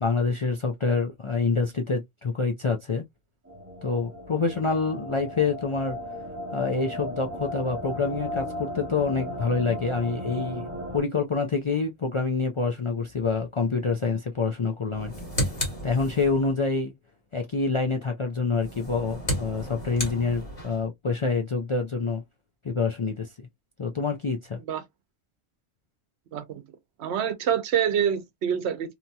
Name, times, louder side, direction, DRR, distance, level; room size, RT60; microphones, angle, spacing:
voice 1, 0.0-3.0 3.8-6.0 6.5-10.7 10.9-15.3 15.8-16.9 17.3-22.2 22.6-23.5 23.8-24.6, left 4 dB, 50° left, 0.3 m, -27 dB
sound 1, 3.4-11.0, equal, 15° right, 1.0 m, -36 dB
sound 2, 14.9-16.6 18.5-20.9, equal, 35° left, 1.3 m, -33 dB
voice 2, 26.3-26.6 27.0-28.9, right 8 dB, 80° right, 0.9 m, -26 dB
2.8 x 2.7 x 2.2 m
omnidirectional pair, 1.1 m